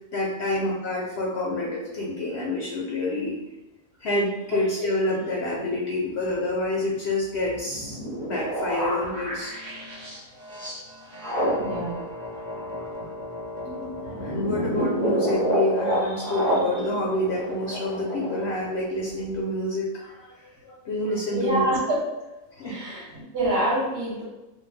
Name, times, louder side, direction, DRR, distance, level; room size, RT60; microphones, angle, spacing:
voice 1, 0.1-3.4 4.0-8.0 8.2-9.5 10.3-10.7 11.0-11.5 13.6-21.6 22.6-22.8, left 1 dB, 65° left, -3 dB, 0.7 m, -28 dB
sound 1, 7.4-18.9 19.2-19.3, equal, 20° right, 0.6 m, -29 dB
voice 2, 11.6-12.1 21.3-22.1 22.6-24.2, right 1 dB, 55° right, -5 dB, 1.0 m, -26 dB
2.5 x 2.1 x 3.2 m, 1.0 s
omnidirectional pair, 1.5 m